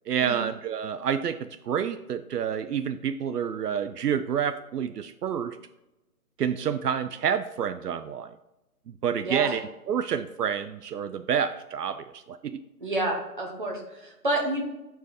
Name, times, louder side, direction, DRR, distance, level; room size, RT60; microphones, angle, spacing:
voice 1, 0.1-5.6 6.4-8.3 9.0-12.6, right 8 dB, 80° right, 10 dB, 0.6 m, -28 dB
voice 2, 12.8-14.6, right 1 dB, 30° right, -1 dB, 1.3 m, -29 dB
7.0 x 4.6 x 4.9 m, 0.96 s
hypercardioid pair, 175°, 47 cm